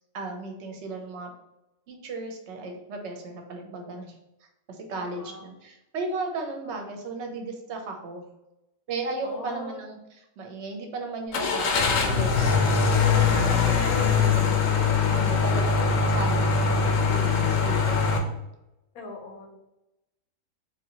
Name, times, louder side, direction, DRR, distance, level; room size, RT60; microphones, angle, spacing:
voice 1, 0.1-1.3 1.9-4.1 4.7-8.2 8.9-18.3, right 3 dB, 60° right, 3 dB, 0.9 m, -36 dB
voice 2, 4.9-5.5 9.2-9.8 18.9-19.5, left 2 dB, 85° left, 2 dB, 1.2 m, -41 dB
Car / Engine starting, 11.3-18.2, left 5 dB, 70° left, 0.9 m, -22 dB
3.5 x 2.8 x 2.8 m, 0.93 s
omnidirectional pair, 1.5 m